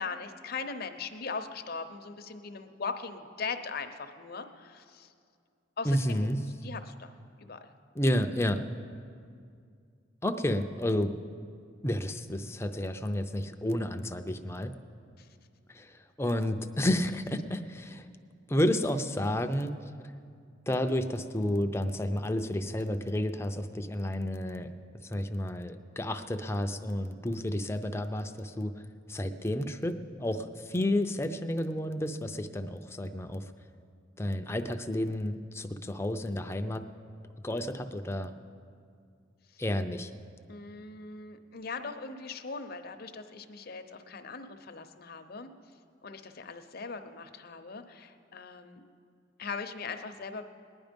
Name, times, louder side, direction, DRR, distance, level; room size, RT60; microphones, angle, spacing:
voice 1, 0.0-5.1 5.8-6.3 6.6-7.1 7.4-7.7 15.2-15.3 39.5-39.6 40.5-45.5 46.0-48.8 49.4-50.4, left 4 dB, 55° left, 8 dB, 0.8 m, -40 dB
voice 2, 5.8-6.4 8.0-8.6 10.2-11.1 11.8-14.7 15.7-18.1 18.5-19.8 20.7-24.7 25.0-28.7 29.1-33.5 34.2-36.8 37.4-38.3 39.6-40.1, left 1 dB, 15° left, 7 dB, 0.6 m, -31 dB
19.0 x 10.5 x 5.2 m, 2.3 s
head